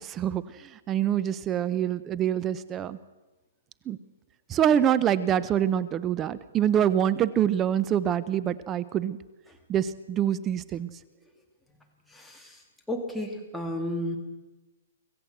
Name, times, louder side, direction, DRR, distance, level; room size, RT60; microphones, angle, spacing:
voice 1, 0.0-3.0 3.9-4.0 4.5-9.2 9.7-10.9, right 10 dB, 15° right, 17 dB, 0.6 m, -25 dB
voice 2, 12.1-12.6 12.9-14.2, left 1 dB, ahead, 0 dB, 2.5 m, -32 dB
25.5 x 15.5 x 7.9 m, 1.1 s
hypercardioid pair, 160°, 0 cm